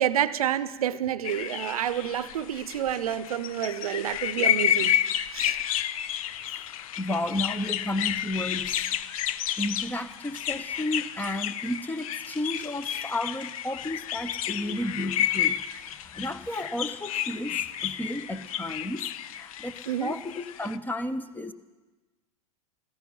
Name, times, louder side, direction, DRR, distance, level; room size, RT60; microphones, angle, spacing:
voice 1, 0.0-5.0 5.3-5.6 19.9-20.1, right 10 dB, 80° right, 16 dB, 0.7 m, -28 dB
sound 1, 1.2-20.8, left 10 dB, 70° left, 0.6 m, -31 dB
voice 2, 7.0-8.8 9.6-15.6 15.9-21.5, left 1 dB, 10° left, 13 dB, 0.8 m, -32 dB
16.0 x 14.0 x 5.5 m, 1.2 s
hypercardioid pair, 100°, 18 cm